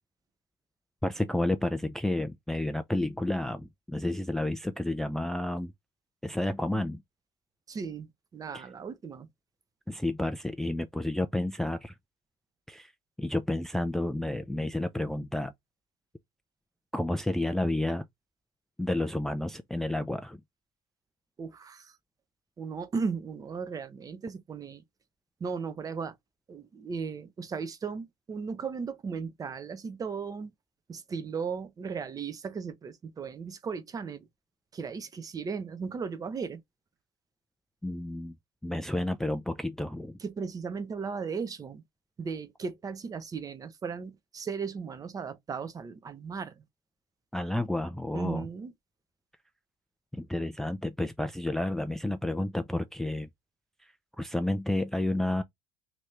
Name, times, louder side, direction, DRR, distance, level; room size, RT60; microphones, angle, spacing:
voice 1, 1.0-5.7 6.2-7.0 8.5-8.6 9.9-11.9 12.7-12.9 13.2-15.5 16.9-18.1 18.8-20.4 37.8-38.4 38.6-40.2 47.3-48.5 50.1-53.3 53.8-55.4, left 1 dB, 5° left, 0.3 m, -31 dB
voice 2, 7.7-8.1 8.3-9.3 21.4-22.0 22.6-24.8 25.4-26.2 26.5-30.5 30.9-34.3 34.7-36.6 40.2-41.8 42.2-46.6 48.1-48.7, right 5 dB, 30° right, 0.7 m, -36 dB
3.0 x 2.7 x 3.3 m
hypercardioid pair, 75°, 12 cm